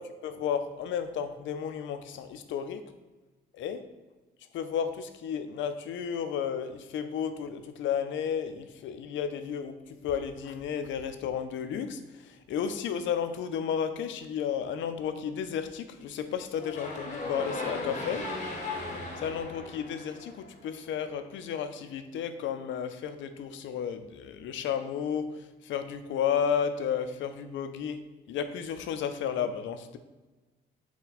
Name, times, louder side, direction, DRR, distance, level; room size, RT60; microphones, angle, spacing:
voice 1, 0.0-2.8 3.5-3.8 4.5-9.8 10.0-18.2 19.2-25.3 25.6-28.0 28.3-30.0, left 8 dB, 70° left, 9 dB, 0.4 m, -33 dB
sound 1, 16.5-20.7, left 2 dB, 35° left, 0.9 m, -37 dB
4.2 x 2.2 x 4.0 m, 1.2 s
cardioid pair, 90°, 20 cm